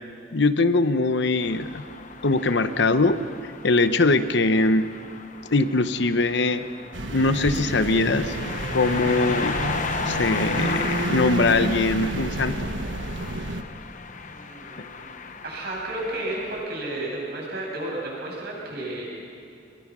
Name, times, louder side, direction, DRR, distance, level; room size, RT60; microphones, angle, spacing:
voice 1, 0.3-1.8 2.2-4.9 5.5-6.6 7.1-8.3 8.7-9.6 10.1-12.7, left 3 dB, 65° left, 10 dB, 0.9 m, -22 dB
sound 1, 1.4-16.6, left 5 dB, 45° left, 1.1 m, -35 dB
sound 2, 6.9-13.6, right 2 dB, 80° right, 1.2 m, -30 dB
voice 2, 14.2-15.1 15.4-19.1, right 1 dB, 60° right, -3 dB, 7.5 m, -32 dB
23.5 x 21.5 x 6.2 m, 2.3 s
head